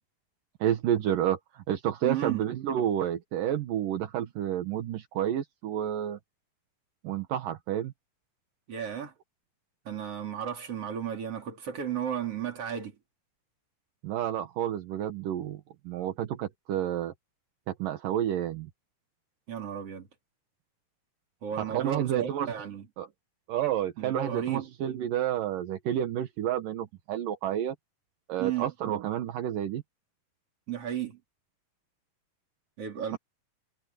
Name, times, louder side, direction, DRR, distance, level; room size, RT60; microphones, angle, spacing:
voice 1, 0.6-6.2 7.0-7.9 14.0-17.1 17.7-18.7 21.6-22.5 23.0-23.1 23.5-27.7 28.3-29.8, right 11 dB, 75° right, 3.0 m, -30 dB
voice 2, 2.0-2.4 8.7-9.1 9.9-13.0 19.5-20.1 21.4-22.9 24.0-24.7 28.4-28.7 30.7-31.2 32.8-33.2, right 9 dB, 45° right, 4.5 m, -34 dB
omnidirectional pair, 3.9 m